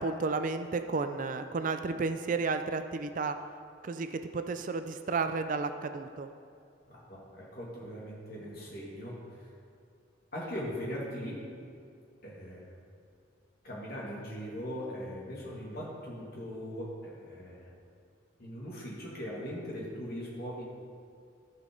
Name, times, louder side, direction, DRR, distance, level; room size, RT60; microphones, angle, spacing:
voice 1, 0.0-3.4 3.8-4.1 4.3-6.3, right 4 dB, 40° right, 9 dB, 0.3 m, -32 dB
voice 2, 6.9-9.5 10.3-11.4 12.2-12.7 13.6-17.7 18.4-20.6, equal, 50° left, -4 dB, 2.2 m, -40 dB
14.0 x 5.7 x 3.8 m, 2.5 s
head